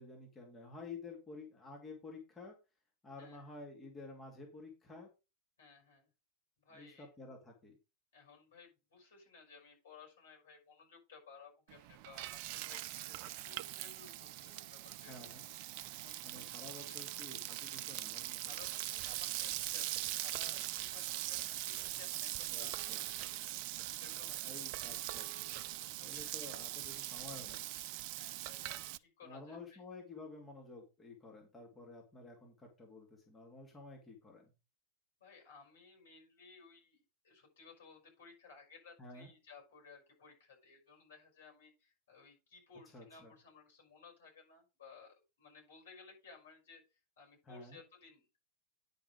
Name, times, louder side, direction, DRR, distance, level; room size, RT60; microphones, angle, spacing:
voice 1, 0.0-2.5 3.0-5.1 6.7-7.8 15.1-15.5 16.2-18.6 22.5-23.0 24.4-25.6 26.0-27.6 29.2-34.5 39.0-39.3 42.9-43.3 47.5-47.8, left 3 dB, 15° left, -1 dB, 2.7 m, -51 dB
voice 2, 3.2-3.6 5.6-6.1 6.6-7.1 8.1-15.2 15.9-16.3 16.7-17.0 18.3-23.5 24.0-24.6 26.0-26.6 28.1-29.8 35.2-48.4, left 5 dB, 60° left, 1 dB, 6.0 m, -59 dB
Frying (food), 11.7-29.0, right 15 dB, 45° right, 0.4 m, -41 dB
10.5 x 5.4 x 5.1 m, 0.29 s
figure-of-eight pair, 90°, 0 cm